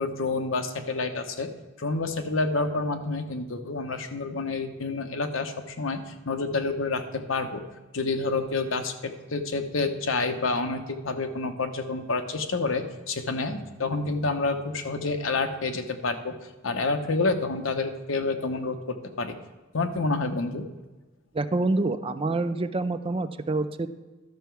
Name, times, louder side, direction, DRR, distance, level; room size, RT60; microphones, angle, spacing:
voice 1, 0.0-1.5 1.8-7.6 7.9-16.4 16.6-19.3 19.7-20.7, left 3 dB, 80° left, 7 dB, 0.9 m, -28 dB
sound 1, 11.5-17.1, left 2 dB, 25° left, 1.4 m, -60 dB
voice 2, 21.3-23.9, right 2 dB, 25° right, 11 dB, 0.4 m, -27 dB
12.0 x 6.8 x 4.6 m, 1.2 s
head